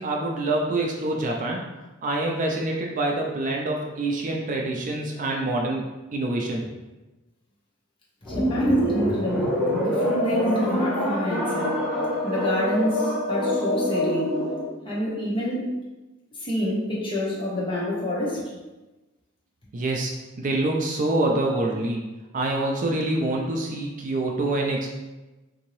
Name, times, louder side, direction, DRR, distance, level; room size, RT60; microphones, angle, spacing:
voice 1, 0.0-1.6 2.0-5.8 6.1-6.7 19.7-22.0 22.3-24.9, right 2 dB, 40° right, 0 dB, 0.4 m, -26 dB
voice 2, 8.2-11.8 12.2-14.4 14.8-15.6 16.4-18.4, left 1 dB, 25° left, -6 dB, 1.0 m, -27 dB
sound 1, 8.2-14.7, equal, ahead, 1.2 m, -25 dB
3.7 x 2.7 x 3.0 m, 1.1 s
head